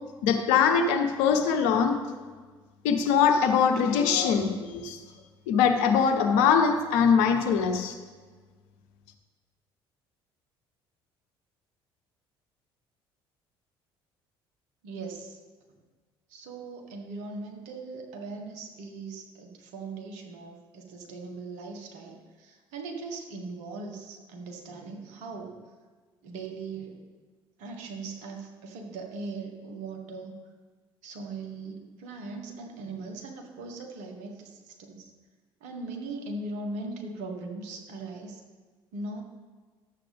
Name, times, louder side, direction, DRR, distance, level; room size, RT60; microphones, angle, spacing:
voice 1, 0.2-2.0 2.8-5.0 5.5-8.0, left 6 dB, 70° left, 5 dB, 1.0 m, -22 dB
voice 2, 14.8-15.4 16.3-25.5 26.2-27.0 27.6-30.3 31.0-35.0 35.6-38.4 38.9-39.2, right 3 dB, 65° right, 2 dB, 1.6 m, -39 dB
12.5 x 7.6 x 3.5 m, 1.4 s
hypercardioid pair, 55°, 13 cm